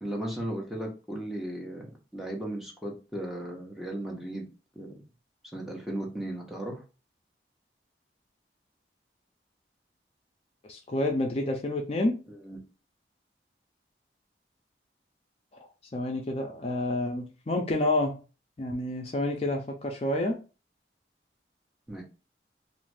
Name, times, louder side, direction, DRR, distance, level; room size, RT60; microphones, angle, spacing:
voice 1, 0.0-1.9 2.1-4.5 4.8-4.9 5.5-6.8 12.4-12.6 21.9-22.0, right 1 dB, ahead, -1 dB, 0.6 m, -36 dB
voice 2, 10.7-12.2 15.9-18.2 18.6-20.4, left 1 dB, 35° left, 2 dB, 0.4 m, -29 dB
2.5 x 2.4 x 3.2 m, 0.33 s
head